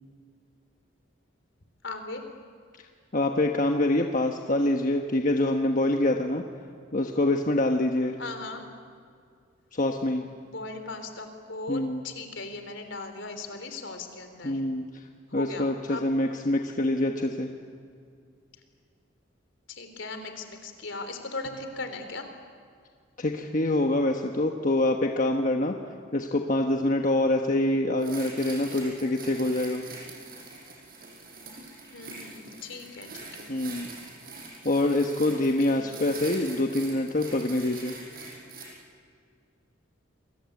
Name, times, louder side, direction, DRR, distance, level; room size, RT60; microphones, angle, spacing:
voice 1, 1.8-2.2 8.2-8.7 10.4-14.6 15.3-16.1 19.7-22.3 31.9-33.5 35.3-35.4 35.7-36.0, left 3 dB, 70° left, 7 dB, 3.6 m, -38 dB
voice 2, 3.1-6.4 6.9-8.2 9.7-10.2 11.7-12.0 14.4-14.8 15.3-17.5 23.2-25.7 26.1-29.8 33.5-33.9 34.6-38.0, left 1 dB, 40° left, 3 dB, 1.3 m, -25 dB
sound 1, 28.0-38.7, right 3 dB, 45° right, 6.1 m, -43 dB
28.5 x 22.0 x 8.5 m, 2.3 s
head